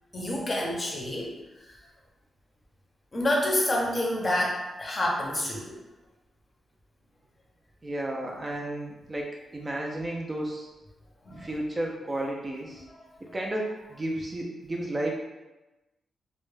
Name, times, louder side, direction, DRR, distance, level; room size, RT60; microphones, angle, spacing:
voice 1, 0.1-1.3 1.7-1.8 3.1-5.8 11.3-11.5 13.3-13.4, left 1 dB, 30° left, -2 dB, 0.6 m, -28 dB
voice 2, 7.8-10.7 11.4-12.9 13.3-15.1, right 1 dB, 25° right, -1 dB, 0.3 m, -32 dB
2.2 x 2.0 x 3.1 m, 1.0 s
cardioid pair, 115°, 0 cm